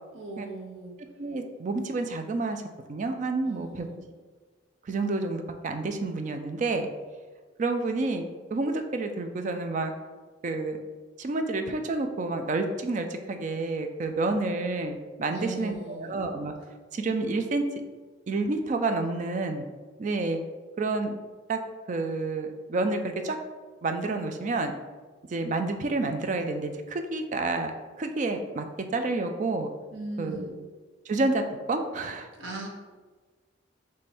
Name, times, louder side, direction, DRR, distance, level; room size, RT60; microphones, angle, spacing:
voice 1, 0.1-1.0 3.4-4.1 15.3-16.2 29.9-30.6 32.4-32.7, right 2 dB, 90° right, 0 dB, 0.8 m, -39 dB
voice 2, 1.2-2.6 2.9-3.9 4.8-6.9 7.6-8.2 8.5-9.9 10.4-10.8 11.2-16.5 16.9-17.6 18.3-19.7 20.0-20.4 20.8-21.1 21.5-21.6 21.9-23.4 23.8-24.7 25.3-27.7 28.0-28.7 28.9-29.7 30.2-30.6 31.1-32.3, right 3 dB, 40° right, 6 dB, 0.4 m, -29 dB
3.4 x 3.2 x 4.2 m, 1.4 s
head